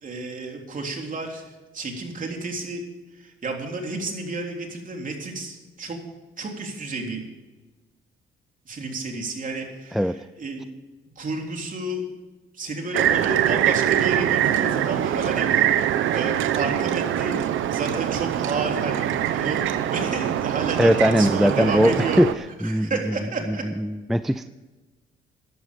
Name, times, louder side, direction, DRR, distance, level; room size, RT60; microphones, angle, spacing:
voice 1, 0.0-2.8 3.1-6.0 6.4-7.2 8.7-10.7 11.2-12.0 12.5-17.4 17.7-19.6 19.9-22.2 22.6-23.6 24.2-24.4, right 3 dB, 40° right, 2 dB, 3.4 m, -31 dB
sound 1, 12.9-22.3, right 11 dB, 85° right, 0.9 m, -23 dB
voice 2, 20.8-22.3 22.6-22.9 23.5-24.5, equal, ahead, 12 dB, 0.4 m, -20 dB
14.5 x 11.5 x 5.2 m, 1.2 s
cardioid pair, 90°, 20 cm